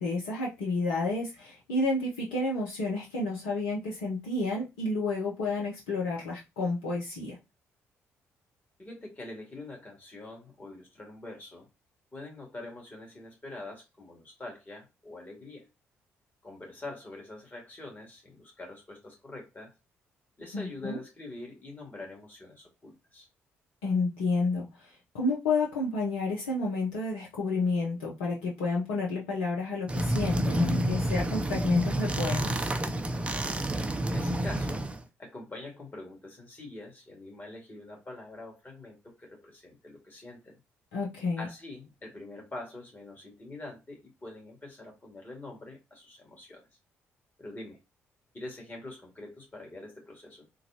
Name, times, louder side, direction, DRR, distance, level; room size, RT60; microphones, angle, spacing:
voice 1, 0.0-7.4 20.5-21.0 23.8-24.7 25.1-32.7 40.9-41.5, left 3 dB, 75° left, 0.7 m, -30 dB
voice 2, 8.8-11.7 12.1-15.7 16.4-19.7 20.4-23.3 34.0-34.9 35.2-40.6 41.4-46.6 47.4-47.8 48.3-50.5, left 2 dB, 30° left, 2.0 m, -44 dB
sound 1, 29.9-35.0, right 1 dB, 15° right, 0.5 m, -29 dB
3.9 x 2.3 x 2.8 m
hypercardioid pair, 40°, 7 cm